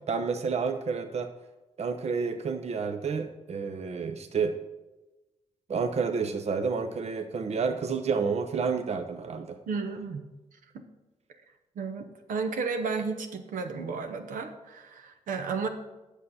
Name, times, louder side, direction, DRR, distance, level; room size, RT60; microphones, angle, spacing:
voice 1, 0.1-1.3 1.8-4.5 5.7-9.6, right 5 dB, 55° right, 7 dB, 0.7 m, -30 dB
voice 2, 9.7-10.2 10.7-10.8 11.8-15.7, right 4 dB, 85° right, 5 dB, 0.9 m, -33 dB
8.3 x 6.6 x 5.6 m, 1.1 s
cardioid pair, 65°, 13 cm